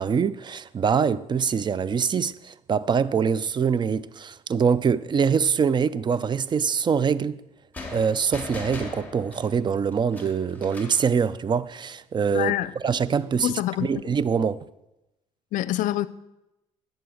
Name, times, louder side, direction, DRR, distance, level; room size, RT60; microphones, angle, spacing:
voice 1, 0.0-7.4 7.9-12.5 12.8-13.5 13.8-14.6, right 6 dB, 35° right, 0.5 m, -24 dB
sound 1, 7.7-11.1, left 3 dB, 10° left, 2.6 m, -39 dB
voice 2, 12.3-12.7 13.4-13.9 15.5-16.1, left 14 dB, 70° left, 0.5 m, -25 dB
11.5 x 8.1 x 6.4 m
supercardioid pair, 90°, 14 cm